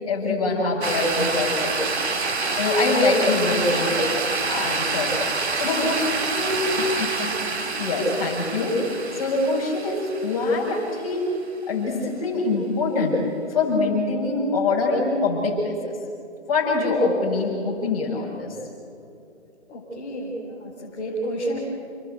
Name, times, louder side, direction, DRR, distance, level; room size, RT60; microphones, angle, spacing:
voice 1, 0.0-2.0 2.6-4.1 4.5-5.1 5.5-6.0 6.3-11.3 11.7-13.2 13.5-15.9 16.5-18.6, left 3 dB, 30° left, -2 dB, 7.3 m, -24 dB
sound 1, 0.8-11.1, right 4 dB, 65° right, 2.9 m, -27 dB
voice 2, 5.6-5.9 19.7-21.6, right 1 dB, 15° left, -9 dB, 5.0 m, -31 dB
29.5 x 20.5 x 8.3 m, 2.7 s
hypercardioid pair, 170°, 35 cm